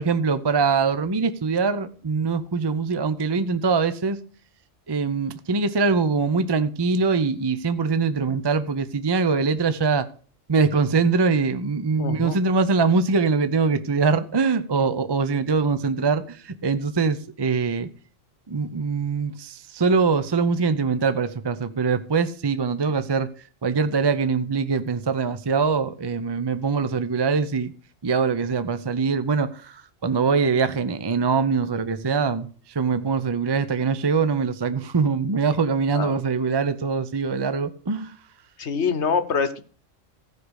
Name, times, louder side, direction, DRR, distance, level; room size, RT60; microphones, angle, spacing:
voice 1, 0.0-4.2 4.9-10.1 10.5-17.9 18.5-23.3 23.6-27.7 28.0-38.1, right 4 dB, 30° right, 0.5 m, -23 dB
voice 2, 11.9-12.4 35.9-36.2 38.6-39.6, left 6 dB, 60° left, 1.2 m, -25 dB
15.0 x 5.0 x 6.3 m
omnidirectional pair, 1.3 m